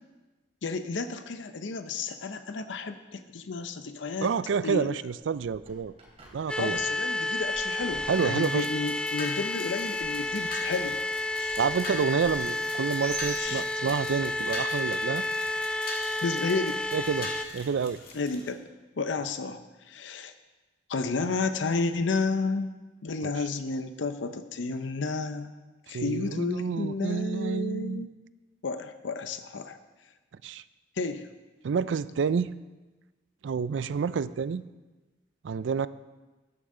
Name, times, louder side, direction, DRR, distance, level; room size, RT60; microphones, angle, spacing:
voice 1, 0.6-4.3 4.6-4.9 6.6-11.0 11.4-11.6 13.4-13.6 16.2-16.8 18.1-18.7 19.0-20.3 20.9-22.7 23.0-25.5 25.9-28.1 28.6-29.8 31.0-31.3, left 3 dB, 90° left, 9 dB, 0.6 m, -31 dB
voice 2, 4.2-5.9 6.3-6.8 8.1-8.7 11.6-15.2 16.9-18.0 23.2-23.3 25.9-28.1 30.4-30.6 31.6-32.5 33.4-34.6 35.4-35.9, right 6 dB, 85° right, 16 dB, 0.4 m, -29 dB
Bird, 5.2-14.1, right 3 dB, 35° right, 2.9 m, -48 dB
sound 1, 6.5-17.5, left 2 dB, 5° left, 0.3 m, -31 dB
sound 2, 8.1-18.5, left 3 dB, 50° left, 2.0 m, -43 dB
14.0 x 9.8 x 3.8 m, 1.2 s
head